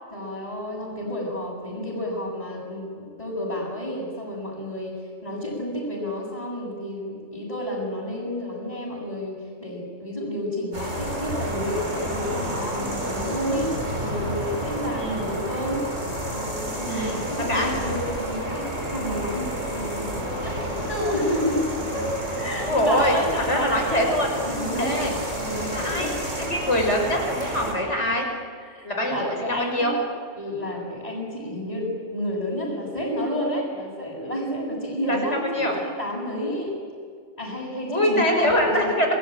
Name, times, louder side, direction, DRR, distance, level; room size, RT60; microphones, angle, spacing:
voice 1, 0.1-5.0 5.2-15.8 16.2-21.6 21.9-22.1 22.4-23.9 24.4-26.1 28.7-29.9 30.4-36.7 37.4-38.9, left 1 dB, 30° left, -7 dB, 7.3 m, -30 dB
sound 1, 10.7-27.7, right 1 dB, 90° right, 6.1 m, -30 dB
voice 2, 14.9-15.3 16.8-17.2 17.5-17.7 22.7-23.2 23.5-24.3 24.8-25.1 25.7-28.3 28.8-29.9 35.1-35.2 35.5-35.8 37.9-39.1, equal, 70° left, 2 dB, 5.8 m, -24 dB
29.5 x 19.5 x 9.1 m, 2.1 s
omnidirectional pair, 1.2 m